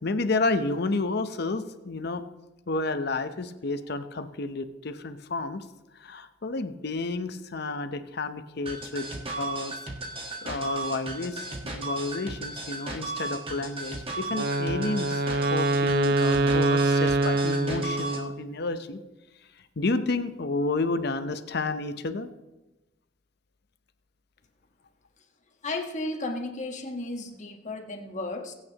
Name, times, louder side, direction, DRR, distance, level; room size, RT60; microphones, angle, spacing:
voice 1, 0.0-2.2 2.7-5.7 5.9-9.8 10.4-15.2 15.5-19.0 19.8-22.3, left 3 dB, 60° left, 10 dB, 0.8 m, -30 dB
sound 1, 8.7-18.2, right 3 dB, 30° right, 1.4 m, -35 dB
Wind instrument woodwind instrument, 14.3-18.5, right 2 dB, 60° right, 0.5 m, -25 dB
voice 2, 25.6-28.5, left 2 dB, 40° left, 4 dB, 1.3 m, -34 dB
22.0 x 8.6 x 2.9 m, 1.1 s
head